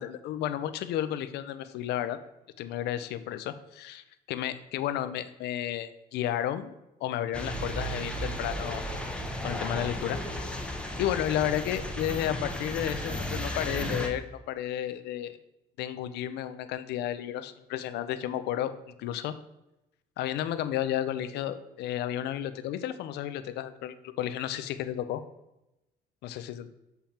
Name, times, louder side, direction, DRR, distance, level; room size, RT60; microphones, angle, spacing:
voice 1, 0.0-2.2 2.6-6.7 7.0-8.8 9.4-10.5 11.0-15.3 15.8-19.3 20.2-25.2 26.2-26.7, left 11 dB, 80° left, 11 dB, 0.6 m, -32 dB
sound 1, 7.3-14.1, equal, 5° left, 1.0 m, -34 dB
7.4 x 5.5 x 4.3 m, 0.92 s
cardioid pair, 110°, 17 cm